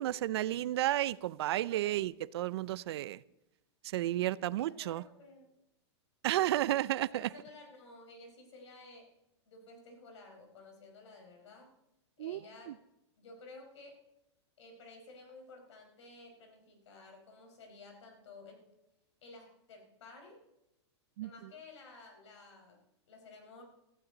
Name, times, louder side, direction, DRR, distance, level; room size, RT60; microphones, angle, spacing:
voice 1, 0.0-3.2 3.8-5.0 6.2-7.3 12.2-12.4 12.7-12.8 21.2-21.3, right 14 dB, 65° right, 19 dB, 0.5 m, -32 dB
voice 2, 1.5-1.9 4.4-5.5 6.3-6.7 7.0-9.1 9.5-11.7 12.2-12.8 13.2-14.0 14.6-18.7 19.2-20.4 21.2-23.6, left 3 dB, 80° left, 3 dB, 4.8 m, -54 dB
16.0 x 14.5 x 4.0 m, 0.89 s
supercardioid pair, 155°, 15 cm